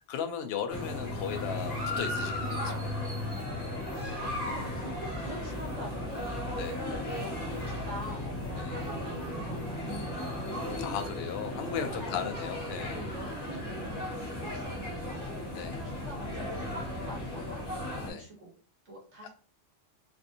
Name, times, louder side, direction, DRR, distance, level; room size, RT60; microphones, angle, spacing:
voice 1, 0.1-2.9 6.6-6.8 8.6-8.8 10.8-13.0 15.5-15.8 18.1-18.2 19.2-19.3, left 8 dB, 65° left, 7 dB, 0.8 m, -36 dB
sound 1, 0.7-18.1, left 1 dB, 45° left, 1.3 m, -36 dB
voice 2, 4.4-6.3 7.2-10.4 11.8-12.2 12.9-15.6 15.8-16.5 16.7-17.7 17.9-18.6 18.8-19.3, right 1 dB, 85° right, -1 dB, 1.6 m, -45 dB
sound 2, 4.7-11.1, right 3 dB, 50° right, 0.7 m, -45 dB
3.4 x 2.5 x 2.6 m, 0.40 s
omnidirectional pair, 1.2 m